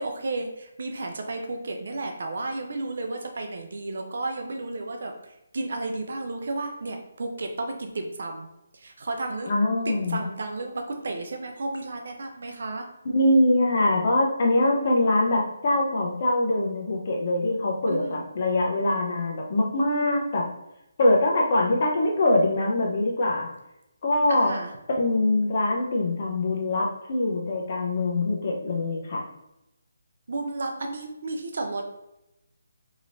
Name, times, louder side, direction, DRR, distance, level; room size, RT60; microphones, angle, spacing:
voice 1, 0.0-5.1 5.5-8.5 8.7-9.5 9.9-12.9 17.9-18.1 24.3-24.7 30.3-31.8, right 2 dB, 65° right, 4 dB, 0.5 m, -32 dB
voice 2, 9.5-10.2 13.0-20.4 21.0-23.5 24.0-24.5 25.0-29.2, left 2 dB, 45° left, -1 dB, 0.8 m, -23 dB
3.0 x 2.9 x 2.6 m, 0.89 s
figure-of-eight pair, 155°, 0 cm